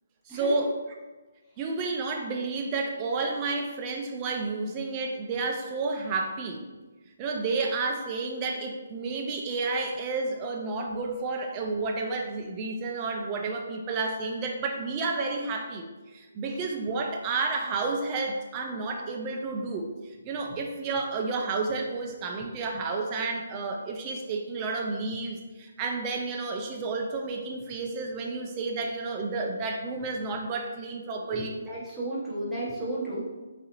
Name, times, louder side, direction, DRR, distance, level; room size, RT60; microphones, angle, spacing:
voice 1, 0.3-0.7 1.6-6.6 7.2-31.6, right 3 dB, 25° right, 1 dB, 0.3 m, -31 dB
voice 2, 31.3-33.2, right 1 dB, ahead, -11 dB, 0.9 m, -34 dB
3.9 x 2.4 x 2.9 m, 1.2 s
hypercardioid pair, 155°, 0 cm